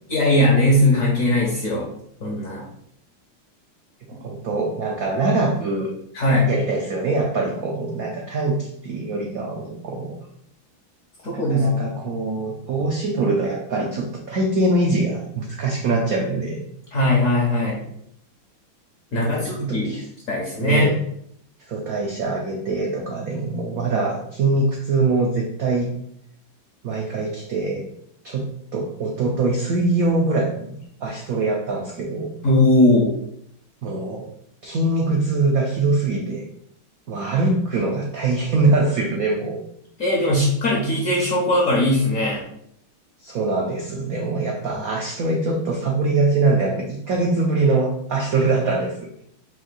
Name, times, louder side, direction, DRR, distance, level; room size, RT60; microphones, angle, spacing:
voice 1, 0.1-1.9 2.2-2.6 6.1-6.5 11.2-11.7 12.0-12.1 16.9-17.8 19.1-19.9 20.3-20.9 32.4-33.1 40.0-42.4, left 1 dB, 60° left, -3 dB, 0.9 m, -19 dB
voice 2, 4.1-5.9 6.5-10.2 11.3-16.6 19.1-20.0 20.6-20.9 21.7-25.9 26.8-27.8 28.2-28.5 28.7-32.3 33.8-34.3 34.6-36.4 37.1-39.6 43.2-49.1, right 3 dB, 75° right, 0 dB, 0.8 m, -23 dB
4.4 x 2.6 x 3.9 m, 0.70 s
omnidirectional pair, 2.3 m